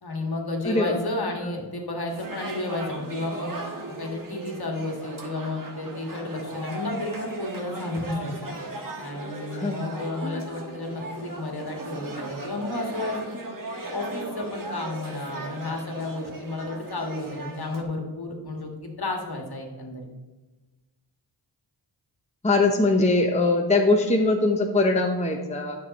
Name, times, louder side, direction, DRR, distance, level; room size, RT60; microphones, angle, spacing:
voice 1, 0.0-3.5 3.9-8.6 9.0-13.4 13.9-20.1, left 2 dB, 55° left, 2 dB, 1.7 m, -32 dB
voice 2, 0.6-1.0 9.5-9.8 10.2-10.4 22.4-25.8, left 2 dB, 15° left, 2 dB, 0.8 m, -22 dB
sound 1, 2.1-17.8, right 2 dB, 45° right, 1.4 m, -37 dB
8.7 x 6.3 x 4.1 m, 1.2 s
cardioid pair, 60°, 47 cm